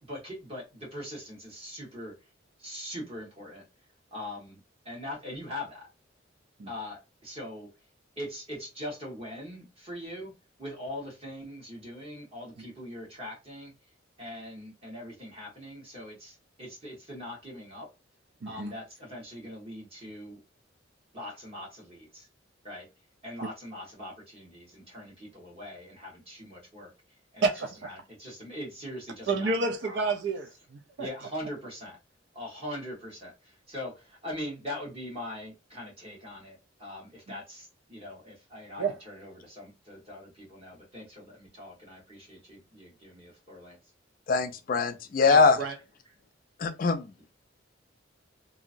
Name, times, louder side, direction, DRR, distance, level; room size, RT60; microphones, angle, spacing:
voice 1, 0.0-2.1 2.6-3.6 4.1-5.9 6.7-7.7 8.2-10.3 10.6-13.7 14.2-17.9 18.4-20.4 21.1-22.3 22.6-22.9 23.2-26.9 27.3-27.5 27.8-30.1 31.0-32.0 32.3-43.8, left 1 dB, 30° right, 1.4 m, -41 dB
voice 2, 18.4-18.7 27.4-27.8 29.3-31.1 38.8-39.0 45.3-45.8, right 3 dB, 60° right, 0.4 m, -30 dB
voice 3, 44.3-45.6 46.6-47.1, left 4 dB, 45° left, 0.4 m, -22 dB
2.9 x 2.6 x 2.5 m
head